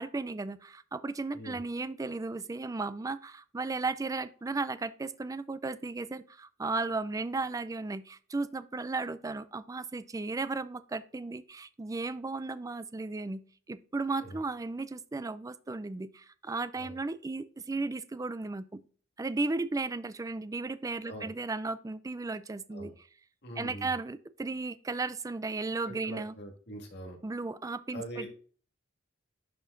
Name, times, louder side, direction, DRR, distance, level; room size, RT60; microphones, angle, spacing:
voice 1, 0.0-13.4 13.7-18.8 19.2-22.9 23.6-26.3 27.2-28.3, right 3 dB, 15° right, 0.3 m, -35 dB
voice 2, 23.4-23.9 25.8-27.2 27.9-28.3, right 1 dB, 55° left, 2.0 m, -43 dB
11.0 x 4.4 x 2.5 m
head